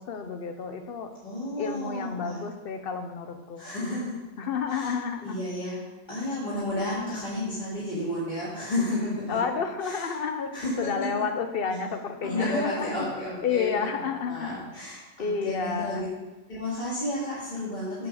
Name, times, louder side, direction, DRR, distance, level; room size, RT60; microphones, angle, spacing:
voice 1, 0.0-1.1 1.6-3.6 4.4-5.4 9.3-13.1 13.4-14.6 15.2-16.0, left 6 dB, 50° left, 7 dB, 0.9 m, -30 dB
voice 2, 1.2-2.4 3.6-4.2 4.7-4.9 5.2-5.8 6.1-9.4 9.8-10.0 10.5-11.1 12.3-13.9 14.3-16.1 16.5-18.1, left 1 dB, 35° left, -11 dB, 2.5 m, -32 dB
8.0 x 7.0 x 4.8 m, 1.1 s
omnidirectional pair, 1.4 m